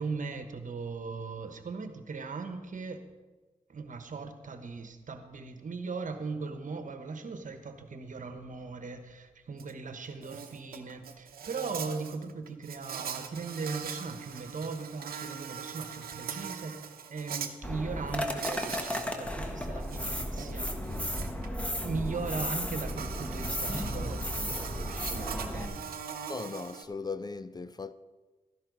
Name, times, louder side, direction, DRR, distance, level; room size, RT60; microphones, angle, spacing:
voice 1, 0.0-3.1 3.7-16.8 17.1-21.1 21.8-25.8, right 4 dB, 60° right, 1.2 m, -39 dB
Insect, 9.6-9.7 10.0-17.5 18.4-19.1 19.4-26.8, right 7 dB, 85° right, 0.8 m, -41 dB
sound 1, 17.6-25.7, equal, 10° left, 1.3 m, -34 dB
voice 2, 26.3-27.9, left 4 dB, 25° left, 0.5 m, -38 dB
13.0 x 11.0 x 4.0 m
cardioid pair, 60°, 15 cm